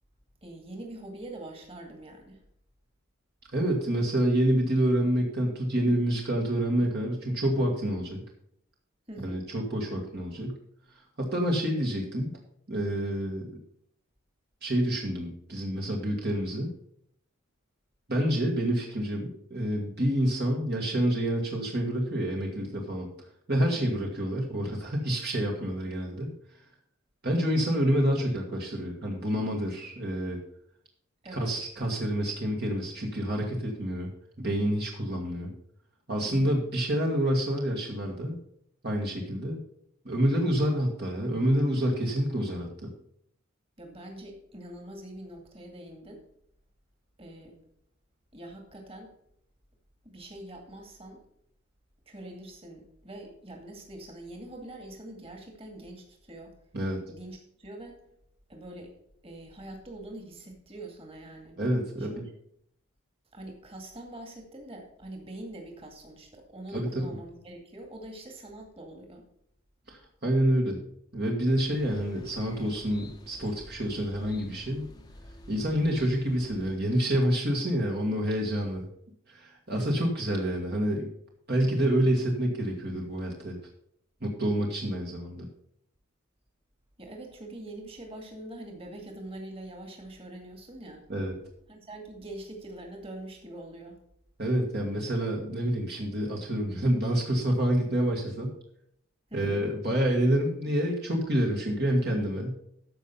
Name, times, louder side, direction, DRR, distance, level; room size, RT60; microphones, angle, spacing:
voice 1, 0.4-2.4 9.1-9.4 23.6-23.9 31.2-31.5 36.2-36.5 43.8-46.2 47.2-47.6 48.3-49.1 50.0-51.2 52.1-56.6 57.1-58.0 58.5-58.9 59.2-61.6 62.0-62.2 63.3-69.2 79.7-80.1 87.0-91.0 91.7-94.0 99.3-99.7, right 1 dB, 25° right, 2 dB, 2.2 m, -44 dB
voice 2, 3.5-8.2 9.2-10.6 11.2-12.3 12.7-13.5 14.6-16.7 18.1-23.1 23.5-26.3 27.2-30.4 31.3-34.1 34.4-35.5 36.1-38.4 38.8-39.6 40.1-42.9 56.7-57.0 61.6-62.2 66.7-67.0 69.9-70.8 71.1-74.9 75.5-78.9 79.3-81.1 81.5-83.6 84.2-85.5 91.1-91.3 94.4-98.5 99.3-102.5, equal, 50° right, 0 dB, 1.9 m, -28 dB
sound 1, 71.7-76.8, equal, 20° left, 0.9 m, -48 dB
14.0 x 5.6 x 5.5 m, 0.69 s
head